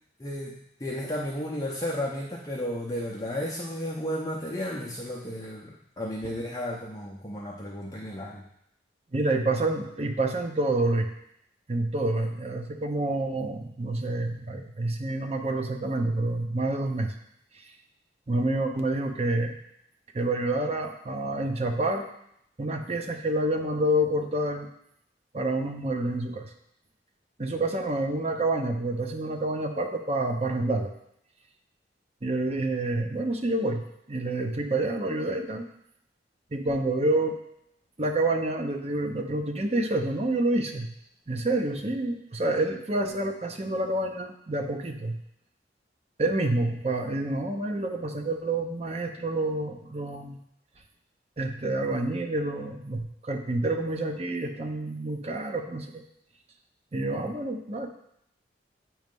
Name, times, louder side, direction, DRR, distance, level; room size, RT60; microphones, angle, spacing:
voice 1, 0.2-0.5 0.8-8.4, left 1 dB, 20° left, -4 dB, 0.7 m, -33 dB
voice 2, 9.1-11.1 11.7-17.1 18.3-19.5 20.1-22.1 22.6-24.7 25.3-26.5 27.4-30.9 32.2-33.8 34.1-35.6 36.5-37.3 38.0-40.9 41.3-45.2 46.2-50.4 51.4-56.0 56.9-57.9, right 2 dB, 35° right, 4 dB, 0.7 m, -28 dB
8.6 x 3.2 x 5.2 m, 0.75 s
head